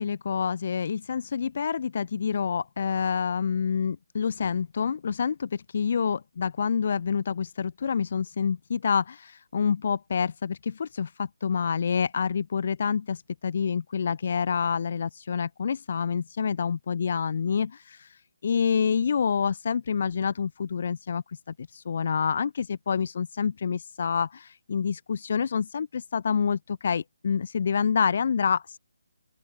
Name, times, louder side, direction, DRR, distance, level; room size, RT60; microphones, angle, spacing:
voice 1, 0.0-28.8, left 6 dB, 40° left, 0.9 m, -27 dB
open air
hypercardioid pair, 170°, 0 cm